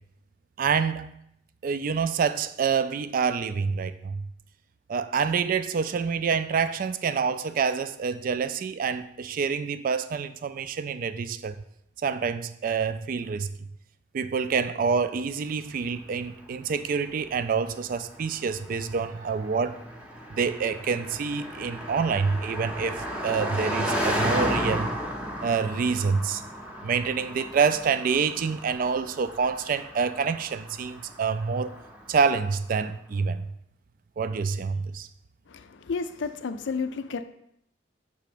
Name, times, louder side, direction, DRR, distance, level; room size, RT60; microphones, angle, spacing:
voice 1, 0.6-1.1 1.6-4.2 4.9-11.5 12.0-13.5 14.1-19.8 20.3-24.9 25.4-26.4 26.8-31.8 32.1-33.5 34.2-35.1, right 5 dB, 50° right, 0.3 m, -27 dB
Car passing by, 15.9-32.4, equal, 5° right, 0.6 m, -34 dB
voice 2, 35.5-37.2, left 5 dB, 75° left, 0.4 m, -31 dB
6.1 x 3.4 x 5.0 m
head